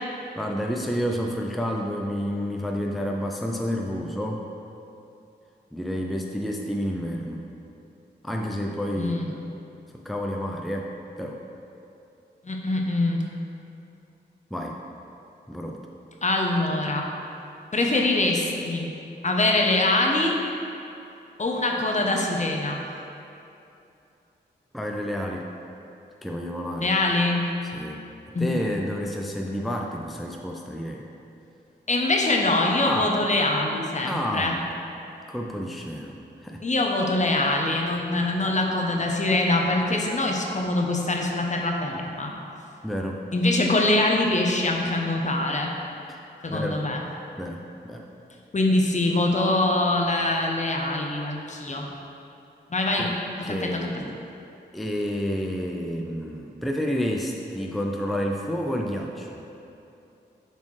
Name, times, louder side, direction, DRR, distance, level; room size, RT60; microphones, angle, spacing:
voice 1, 0.4-4.4 5.7-7.5 8.2-9.3 10.0-10.9 11.2-11.4 14.5-14.8 15.5-15.8 24.7-25.5 26.2-26.9 27.7-28.0 28.4-31.0 32.9-33.2 34.0-34.6 35.3-36.6 42.8-43.3 46.1-46.2 46.5-46.8 47.4-48.0 53.0-53.2 53.4-54.2 54.7-59.4, equal, ahead, 0 dB, 0.5 m, -30 dB
voice 2, 9.0-9.3 12.4-13.2 16.2-17.1 17.7-18.9 19.2-20.3 21.4-22.8 26.8-27.5 28.3-28.6 31.9-34.5 36.6-42.3 43.3-45.7 46.4-47.0 48.5-51.9 52.7-53.1 53.5-53.8, left 2 dB, 40° left, 0 dB, 0.8 m, -23 dB
7.0 x 4.2 x 3.2 m, 2.8 s
cardioid pair, 50°, 18 cm